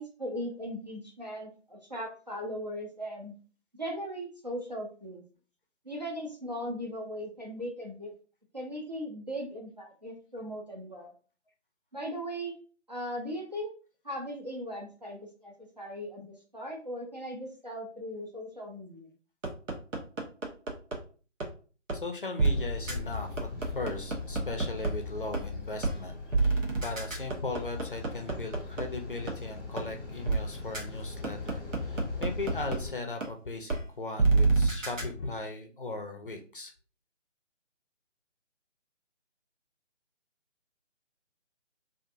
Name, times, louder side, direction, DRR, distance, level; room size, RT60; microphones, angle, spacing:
voice 1, 0.0-3.3 3.8-5.2 5.8-8.1 8.5-11.1 11.9-12.5 12.9-13.7 14.0-19.1, equal, 35° right, 0 dB, 0.5 m, -38 dB
sound 1, 19.4-21.0 21.4-21.5 21.9-22.0 22.4-22.5 22.9-23.0 23.4-24.9 25.3-25.4 25.8-26.0 26.3-28.8 29.3-29.4 29.8-29.9 30.3-30.4 30.7-30.8 31.2-32.8 33.2-33.3 33.7-33.8 34.2-35.0, right 3 dB, 90° right, 0.9 m, -26 dB
voice 2, 21.9-36.7, left 2 dB, 45° left, 4 dB, 0.5 m, -38 dB
sound 2, 22.5-32.9, left 4 dB, 20° left, 0.8 m, -40 dB
2.5 x 2.5 x 2.5 m, 0.38 s
figure-of-eight pair, 155°, 37 cm